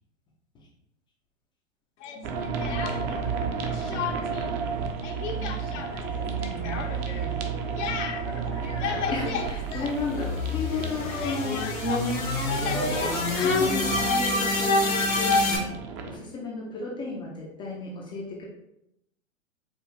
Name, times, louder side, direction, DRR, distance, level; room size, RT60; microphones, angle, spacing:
Speech, 2.0-3.3 3.6-4.5 4.7-10.4 10.7-14.1, left 7 dB, 60° left, 0.7 m, -35 dB
voice 1, 2.2-3.0 5.3-5.8 6.2-6.8 7.2-7.5 9.1-11.6 12.6-15.7 16.1-18.5, left 3 dB, 15° left, -2 dB, 0.3 m, -34 dB
sound 1, 2.2-16.2, right 6 dB, 35° right, 0.6 m, -33 dB
sound 2, 9.2-15.6, left 2 dB, 85° left, 1.2 m, -26 dB
4.7 x 2.5 x 3.1 m, 0.81 s
hypercardioid pair, 105°, 40 cm